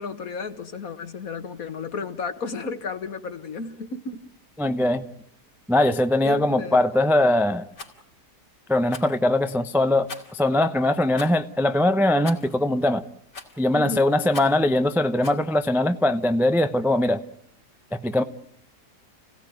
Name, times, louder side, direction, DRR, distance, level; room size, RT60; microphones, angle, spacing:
voice 1, 0.0-4.2 6.2-6.8 13.7-14.1, left 4 dB, 55° left, 1.9 m, -33 dB
voice 2, 4.6-5.0 5.7-7.6 8.7-13.0 13.6-17.2 18.0-18.2, left 1 dB, ahead, 0.5 m, -21 dB
Rattle, 7.7-8.0 8.9-9.2 10.1-10.4 11.1-11.4 12.2-12.6 13.3-13.7 14.3-14.6 15.2-15.4, left 3 dB, 85° left, 3.8 m, -40 dB
29.5 x 17.0 x 9.4 m
omnidirectional pair, 1.8 m